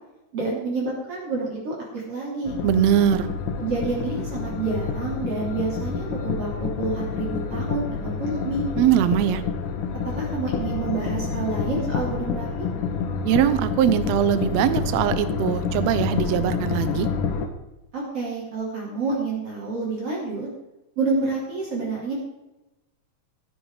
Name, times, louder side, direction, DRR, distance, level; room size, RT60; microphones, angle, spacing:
voice 1, 0.3-2.6 3.6-8.6 10.0-12.7 17.9-20.5 21.0-22.1, right 3 dB, 45° right, -4 dB, 4.0 m, -28 dB
sound 1, 2.4-17.5, left 5 dB, 70° left, 2.5 m, -28 dB
voice 2, 2.6-3.3 8.8-9.4 13.2-17.1, right 10 dB, 80° right, 12 dB, 1.5 m, -21 dB
15.0 x 7.7 x 4.9 m, 0.97 s
omnidirectional pair, 4.0 m